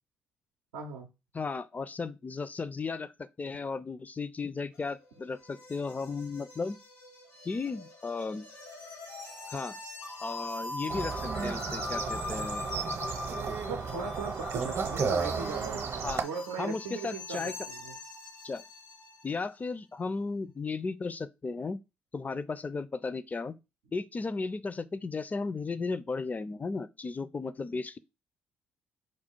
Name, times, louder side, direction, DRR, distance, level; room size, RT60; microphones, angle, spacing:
voice 1, 0.7-1.1 13.6-18.0, right 5 dB, 85° right, 0.5 m, -39 dB
voice 2, 1.3-3.1 3.4-6.8 7.4-8.5 9.5-9.8 10.2-12.7 13.5-13.6 16.0-16.2 16.6-17.5 18.4-18.6 19.2-21.8 22.1-23.5 23.9-28.0, left 4 dB, 25° left, 0.4 m, -35 dB
sound 1, 4.7-19.4, left 2 dB, 80° left, 1.3 m, -42 dB
sound 2, 10.9-16.2, right 5 dB, 50° right, 0.7 m, -33 dB
4.6 x 2.3 x 4.3 m
hypercardioid pair, 45°, 6 cm